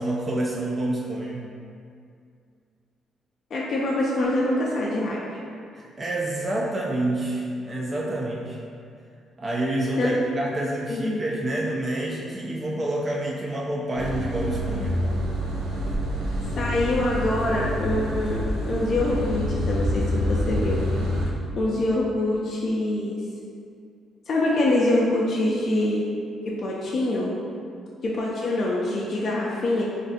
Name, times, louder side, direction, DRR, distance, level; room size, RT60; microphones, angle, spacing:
voice 1, 0.0-1.5 5.7-8.6 9.4-15.1, right 1 dB, 30° right, -2 dB, 0.4 m, -28 dB
voice 2, 3.5-5.2 10.0-10.1 10.9-11.2 16.6-20.8 21.6-23.2 24.3-26.1 26.5-27.3 28.0-29.8, left 1 dB, 50° left, -4 dB, 0.4 m, -25 dB
sound 1, 13.9-21.3, equal, 90° right, 0.7 m, -27 dB
2.5 x 2.5 x 4.0 m, 2.3 s
cardioid pair, 90°, 0 cm